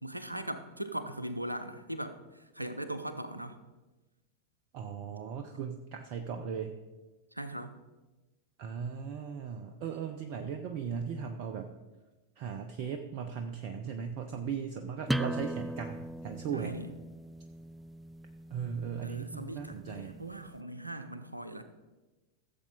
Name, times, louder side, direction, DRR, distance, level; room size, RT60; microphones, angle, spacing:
voice 1, 0.0-2.2 2.5-3.6 7.3-7.7 16.5-16.9 19.0-21.6, right 1 dB, 85° right, 10 dB, 0.8 m, -39 dB
voice 2, 4.7-6.8 8.6-11.7 12.4-16.8 18.5-20.2, right 7 dB, 45° right, 6 dB, 0.7 m, -38 dB
sound 1, 15.1-20.5, right 1 dB, 5° right, 0.3 m, -39 dB
15.0 x 7.4 x 4.0 m, 1.2 s
figure-of-eight pair, 90°, 0 cm